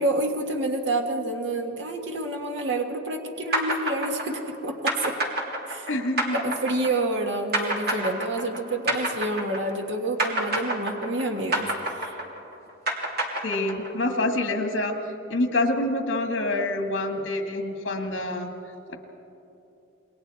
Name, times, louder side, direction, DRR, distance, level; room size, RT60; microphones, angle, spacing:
voice 1, 0.0-5.2 5.7-5.9 6.3-12.2, right 2 dB, 65° right, 3 dB, 1.6 m, -28 dB
sound 1, 3.5-9.9 10.2-14.0, right 2 dB, 50° right, 2.7 m, -28 dB
voice 2, 5.9-6.4 13.4-14.9 15.3-18.5 18.9-19.0, left 2 dB, 75° left, 4 dB, 2.3 m, -26 dB
28.0 x 22.0 x 4.4 m, 3.0 s
head